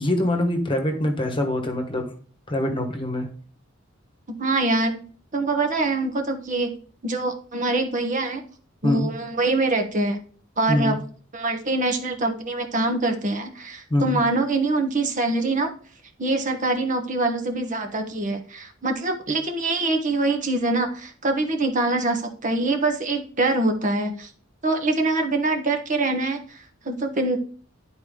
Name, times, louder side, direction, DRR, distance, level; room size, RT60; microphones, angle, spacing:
voice 1, 0.0-2.1 2.5-3.3 8.8-9.1 10.7-11.0 13.9-14.2, left 1 dB, 25° left, 4 dB, 1.3 m, -24 dB
voice 2, 4.4-5.0 5.3-8.4 8.8-10.2 10.6-10.9 11.3-15.7 16.2-24.3 24.6-27.4, right 2 dB, 40° right, 4 dB, 1.1 m, -24 dB
11.0 x 4.5 x 3.7 m, 0.43 s
head